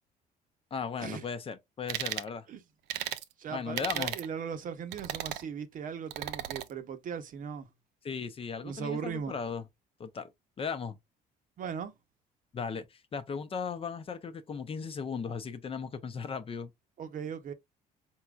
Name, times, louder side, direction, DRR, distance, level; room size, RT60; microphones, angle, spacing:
voice 1, 0.7-2.5 3.5-4.1 8.0-9.6 10.0-10.3 10.6-11.0 12.5-16.7, left 6 dB, 35° left, 0.6 m, -37 dB
sound 1, 1.9-2.3 2.9-3.2 3.8-4.3 4.9-5.4 6.1-6.7, right 13 dB, 90° right, 0.5 m, -35 dB
voice 2, 3.4-7.7 8.6-9.3 11.6-11.9 17.0-17.5, right 7 dB, 50° right, 0.8 m, -38 dB
4.4 x 3.6 x 2.3 m
cardioid pair, 110°, 17 cm